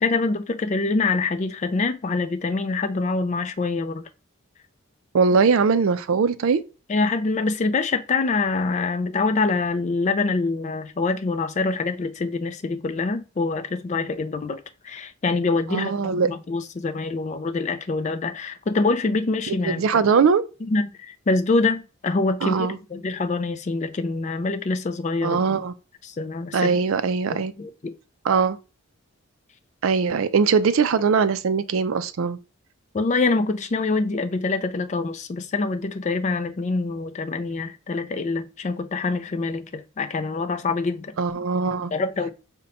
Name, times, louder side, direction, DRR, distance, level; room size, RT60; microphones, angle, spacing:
voice 1, 0.0-4.0 6.9-20.0 20.6-25.6 26.0-26.8 27.3-27.9 32.9-41.4 41.9-42.3, left 3 dB, 30° left, 0.3 m, -25 dB
voice 2, 5.1-6.6 15.7-16.3 19.5-20.4 22.4-22.8 25.2-25.7 26.5-27.5 28.2-28.6 29.8-32.4 41.2-41.9, right 5 dB, 65° right, 0.4 m, -21 dB
5.1 x 2.2 x 4.1 m
head